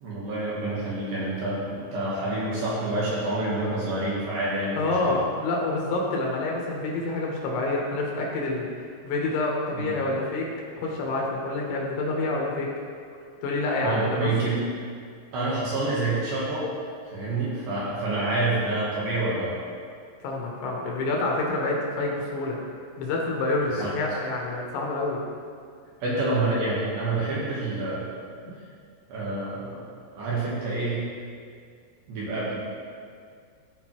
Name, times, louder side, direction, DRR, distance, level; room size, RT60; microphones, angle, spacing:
voice 1, 0.0-5.2 9.7-10.0 13.8-14.6 15.3-16.7 17.1-19.5 23.7-23.9 26.0-28.1 29.1-29.8 30.2-31.0 32.1-32.6, right 2 dB, 65° right, -7 dB, 2.5 m, -27 dB
voice 2, 4.8-8.7 9.0-10.5 10.8-12.7 13.4-14.3 20.2-22.6 23.0-25.2 28.4-28.5, left 2 dB, 75° left, -2 dB, 3.2 m, -27 dB
14.5 x 5.1 x 3.0 m, 2.2 s
omnidirectional pair, 5.4 m